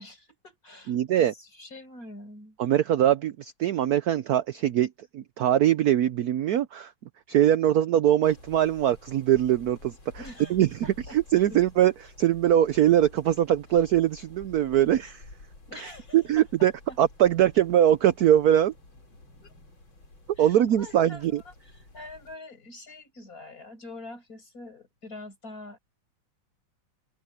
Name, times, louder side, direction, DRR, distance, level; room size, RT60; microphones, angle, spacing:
voice 1, 0.0-2.6 10.2-10.6 10.8-11.6 15.7-16.5 16.9-17.0 19.4-19.5 20.4-25.8, left 2 dB, 40° left, 6.7 m, -45 dB
voice 2, 0.9-1.3 2.6-6.9 7.3-9.9 10.5-11.9 12.2-15.2 15.7-16.7 17.0-18.7 20.4-21.4, right 11 dB, 70° right, 0.9 m, -22 dB
sound 1, 8.2-22.4, left 2 dB, 70° left, 6.6 m, -51 dB
open air
omnidirectional pair, 2.2 m